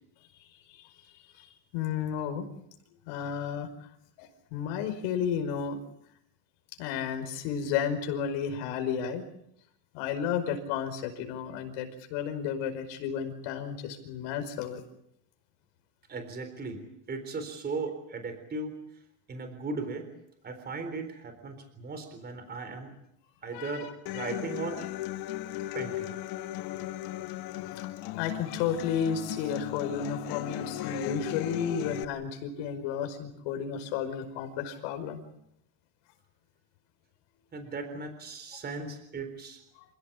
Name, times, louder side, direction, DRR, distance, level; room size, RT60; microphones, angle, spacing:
voice 1, 0.2-2.5 3.1-3.7 4.2-5.8 6.8-9.2 9.9-14.8 23.5-24.3 27.6-35.2 39.8-39.9, left 7 dB, 85° left, 7 dB, 5.3 m, -33 dB
voice 2, 16.1-18.7 19.3-20.1 20.4-22.9 23.4-24.8 25.7-26.1 37.5-39.6, right 3 dB, 20° right, 8 dB, 3.9 m, -37 dB
Human voice / Acoustic guitar, 24.1-32.0, left 15 dB, 50° left, 1.1 m, -37 dB
28.0 x 17.0 x 8.6 m, 0.76 s
cardioid pair, 175°, 47 cm